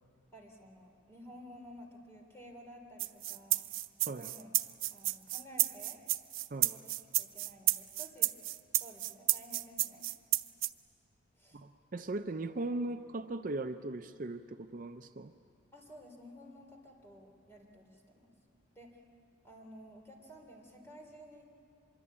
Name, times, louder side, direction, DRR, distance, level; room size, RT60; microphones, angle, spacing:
voice 1, 0.3-3.6 4.1-4.5 4.9-6.0 6.6-6.9 7.2-8.3 8.8-10.0 11.3-11.6 15.7-18.3 18.7-19.0 19.4-21.5, equal, 15° left, 0 dB, 3.2 m, -53 dB
sound 1, 3.0-10.7, right 16 dB, 90° right, 0.6 m, -31 dB
voice 2, 11.5-15.3, right 2 dB, 45° right, 8 dB, 0.5 m, -38 dB
25.0 x 22.5 x 8.6 m, 2.6 s
head